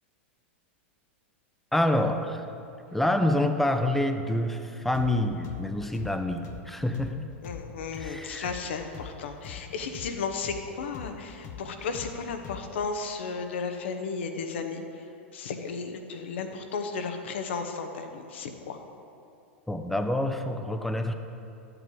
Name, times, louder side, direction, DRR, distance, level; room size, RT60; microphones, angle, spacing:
voice 1, 1.7-2.4 2.9-7.3 8.0-8.5 19.7-21.1, left 1 dB, 5° left, 7 dB, 0.7 m, -27 dB
sound 1, 4.9-12.9, left 8 dB, 45° left, 0.7 m, -43 dB
voice 2, 7.4-18.8, left 5 dB, 65° left, 6 dB, 1.0 m, -34 dB
12.0 x 7.9 x 3.9 m, 2.8 s
hypercardioid pair, 95°, 7 cm